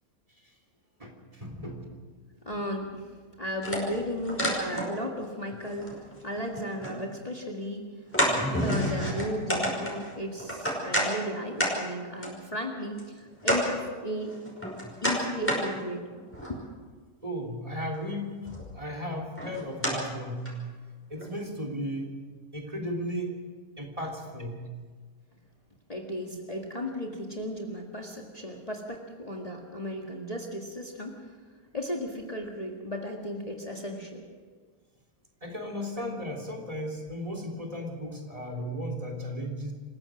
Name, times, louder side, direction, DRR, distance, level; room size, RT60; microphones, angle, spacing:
voice 1, 1.0-1.9 8.4-8.9 17.2-18.4 18.7-20.5 21.1-22.1 22.5-23.4 23.8-24.6 35.4-39.7, equal, 25° right, 2 dB, 3.4 m, -35 dB
voice 2, 2.5-7.8 8.6-14.4 15.0-16.1 16.4-16.6 25.9-31.4 31.7-34.3, equal, 25° left, 0 dB, 2.0 m, -35 dB
sound 1, 3.6-5.3 5.5-7.0 7.4-7.5 8.1-11.1 11.6-11.7 12.2-12.3 13.0-13.1 13.4-13.6 14.2-15.6 16.1-16.6 17.9-18.1 18.4-18.9 19.4-19.9 20.5-20.6 21.2-21.3, equal, 10° left, 5.3 m, -29 dB
27.0 x 16.0 x 6.3 m, 1.5 s
omnidirectional pair, 1.5 m